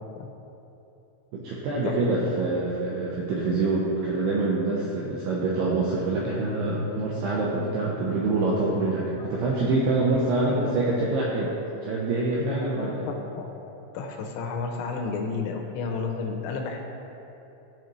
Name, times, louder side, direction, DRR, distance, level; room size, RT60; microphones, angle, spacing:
voice 1, 1.3-11.5 11.8-13.1, right 2 dB, 80° right, -4 dB, 2.3 m, -25 dB
voice 2, 12.4-13.5 13.9-16.9, left 4 dB, 80° left, 2 dB, 2.9 m, -32 dB
15.5 x 5.5 x 3.1 m, 2.9 s
omnidirectional pair, 5.6 m